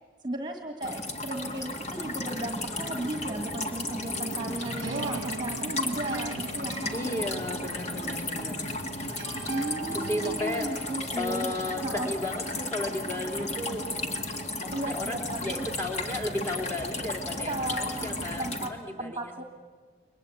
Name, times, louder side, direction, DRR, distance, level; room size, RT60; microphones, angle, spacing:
voice 1, 0.2-6.9 9.5-11.5 11.8-12.1 14.7-15.7 17.5-18.7 19.0-19.4, right 1 dB, 20° right, 4 dB, 1.7 m, -35 dB
sound 1, 0.8-18.7, left 2 dB, 35° left, 1.9 m, -34 dB
sound 2, 4.1-12.2, right 5 dB, 75° right, 0.7 m, -42 dB
voice 2, 6.9-8.7 9.0-9.5 9.9-10.7 11.2-13.9 14.6-19.4, left 1 dB, 10° left, 1 dB, 3.2 m, -34 dB
29.0 x 23.0 x 8.5 m, 1.6 s
head